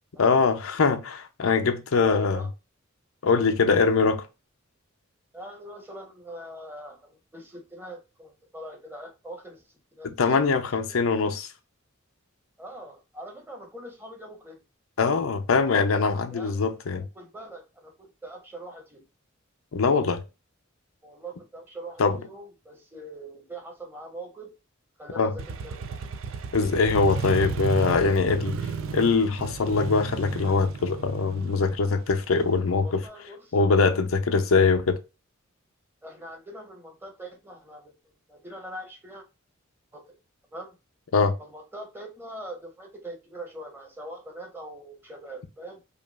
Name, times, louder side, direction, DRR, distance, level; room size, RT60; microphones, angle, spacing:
voice 1, 0.2-2.4 3.2-4.2 10.2-11.5 15.0-17.0 19.7-20.2 22.0-22.2 25.1-25.4 26.5-28.6 28.9-33.0 33.5-35.0 41.1-41.4, left 4 dB, 80° left, 0.6 m, -22 dB
voice 2, 1.9-2.5 5.3-9.6 9.9-10.5 10.9-11.1 12.6-14.6 16.3-16.6 17.0-19.0 21.0-24.5 25.0-26.1 32.8-33.6 36.0-37.9 38.3-39.2 39.9-40.2 40.5-40.8 41.4-45.8, right 1 dB, 10° right, 1.0 m, -42 dB
Motorcycle, 25.4-33.0, right 5 dB, 70° right, 0.5 m, -34 dB
5.1 x 2.4 x 2.3 m
head